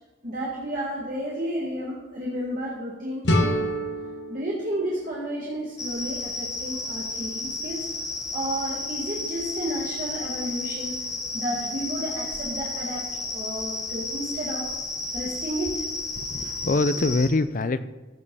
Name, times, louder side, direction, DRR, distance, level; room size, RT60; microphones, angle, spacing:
voice 1, 0.2-3.8 4.3-7.8 8.3-10.9 11.3-13.0 13.3-14.7 15.1-15.8, equal, 45° right, -5 dB, 2.0 m, -32 dB
sound 1, 3.2-6.1, equal, 65° left, 1.4 m, -28 dB
sound 2, 5.8-17.3, left 2 dB, 15° left, 0.9 m, -32 dB
voice 2, 16.2-17.9, left 2 dB, 40° left, 13 dB, 0.4 m, -24 dB
15.0 x 5.3 x 5.5 m, 1.2 s
head